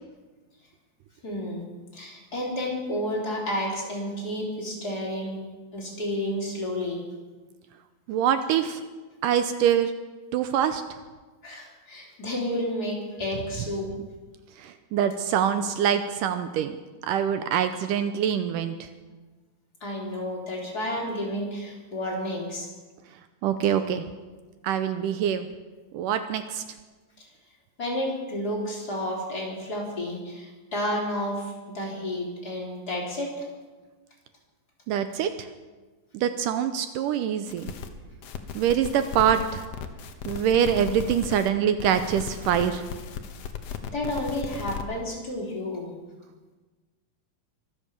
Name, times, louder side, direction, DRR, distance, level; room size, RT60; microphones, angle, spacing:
voice 1, 1.2-1.6 1.9-5.4 5.7-7.0 11.4-13.9 19.8-22.7 27.2-27.3 27.8-33.4 43.9-45.9, left 1 dB, 25° left, -3 dB, 3.8 m, -31 dB
voice 2, 8.1-8.8 9.2-9.9 10.3-10.8 14.6-16.8 17.0-18.9 23.4-24.0 24.6-25.5 25.9-26.6 34.9-35.5 36.1-37.7 38.6-39.6 40.3-42.8, right 9 dB, 80° right, 9 dB, 2.2 m, -24 dB
sound 1, 37.5-37.9 38.2-41.5 41.8-44.8, left 7 dB, 65° left, 1.7 m, -36 dB
24.0 x 8.4 x 7.1 m, 1.3 s
omnidirectional pair, 4.0 m